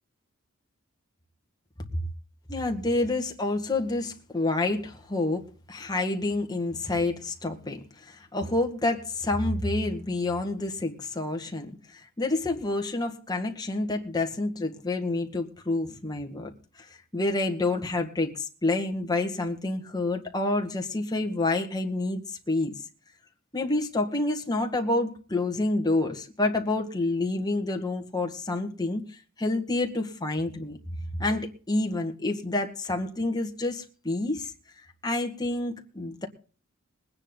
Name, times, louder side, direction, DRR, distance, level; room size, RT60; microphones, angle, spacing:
voice 1, 2.5-16.5 16.8-22.7 23.5-34.5 35.0-36.3, left 2 dB, 20° left, 1.9 m, -28 dB
21.5 x 9.9 x 3.9 m
head